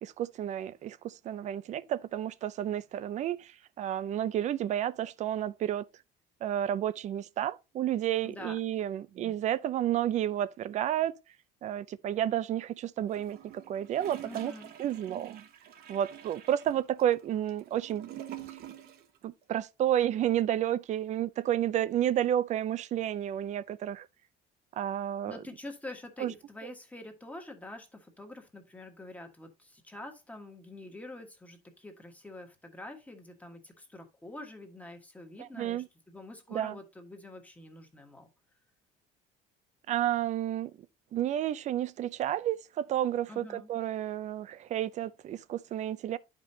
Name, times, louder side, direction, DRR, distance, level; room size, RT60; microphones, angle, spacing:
voice 1, 0.0-3.5 3.8-5.8 6.4-11.1 11.6-14.5 14.8-15.4 15.9-18.1 19.2-24.1 24.8-25.4 26.2-26.3 35.4-35.9 36.5-36.8 39.9-40.7 41.1-46.2, right 11 dB, 45° right, 0.5 m, -31 dB
voice 2, 8.2-8.6 14.2-14.7 25.3-38.3 43.3-43.7, left 2 dB, 10° left, 1.5 m, -46 dB
Gurgling / Toilet flush, 13.1-19.2 19.4-19.5, right 11 dB, 65° right, 1.2 m, -47 dB
11.0 x 5.2 x 2.8 m
cardioid pair, 140°, 17 cm